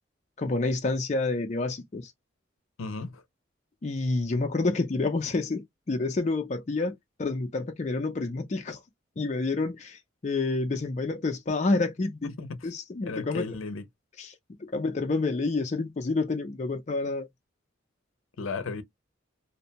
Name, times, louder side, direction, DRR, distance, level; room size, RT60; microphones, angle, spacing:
voice 1, 0.4-2.1 3.8-8.8 9.2-12.3 12.6-13.4 14.2-14.3 14.6-17.3, left 3 dB, 35° left, 0.4 m, -28 dB
voice 2, 2.8-3.2 12.2-12.7 13.0-13.9 18.4-18.8, left 4 dB, 85° left, 0.5 m, -35 dB
2.5 x 2.1 x 2.8 m
head